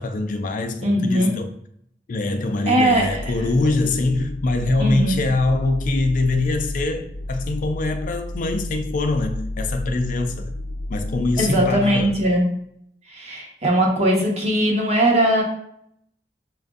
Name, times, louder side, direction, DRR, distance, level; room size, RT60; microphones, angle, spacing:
voice 1, 0.0-1.5 2.1-10.5 10.9-12.1, left 2 dB, 50° left, 6 dB, 0.4 m, -23 dB
voice 2, 0.8-1.3 2.7-3.3 4.8-5.2 11.4-12.5 13.1-15.4, right 1 dB, 40° right, -1 dB, 0.9 m, -20 dB
sound 1, 2.8-12.4, left 1 dB, 80° right, 0.6 m, -32 dB
5.9 x 2.5 x 2.4 m, 0.71 s
head